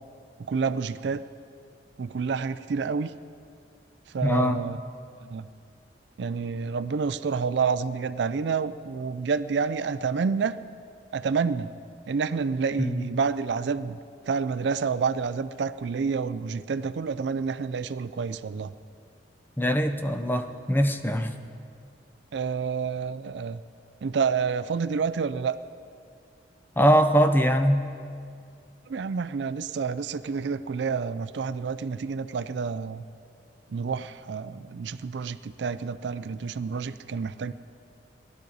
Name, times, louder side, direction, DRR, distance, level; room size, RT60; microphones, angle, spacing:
voice 1, 0.5-1.2 2.0-3.1 4.1-4.8 5.3-5.5 6.2-10.6 11.1-11.7 12.1-14.0 14.3-18.7 22.3-23.6 24.0-25.6 28.9-33.0 33.7-37.5, right 5 dB, 75° right, 14 dB, 0.4 m, -28 dB
voice 2, 4.2-4.7 12.8-13.1 19.6-21.3 26.8-27.9, equal, 10° left, 7 dB, 0.6 m, -22 dB
19.5 x 12.0 x 4.0 m, 2.3 s
head